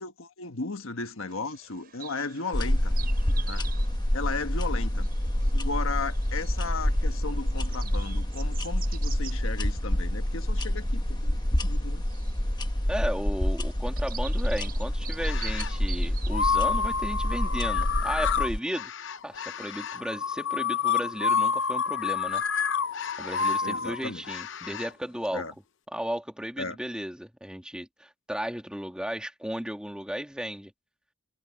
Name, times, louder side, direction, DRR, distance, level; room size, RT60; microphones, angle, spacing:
voice 1, 0.0-2.9 3.4-3.7 4.1-5.1 5.5-11.4 11.6-12.0 23.6-24.2 25.3-25.5 26.6-26.8, left 4 dB, 80° left, 1.3 m, -35 dB
Bird vocalization bird call bird song, 1.3-18.3, right 9 dB, 45° right, 6.5 m, -47 dB
sound 1, 2.5-18.6, equal, 20° left, 1.2 m, -27 dB
voice 2, 12.9-18.9 19.2-22.4 23.2-25.4 25.9-30.7, equal, 5° right, 2.2 m, -34 dB
sound 2, 15.2-15.8 16.3-24.9, left 6 dB, 60° left, 0.7 m, -29 dB
head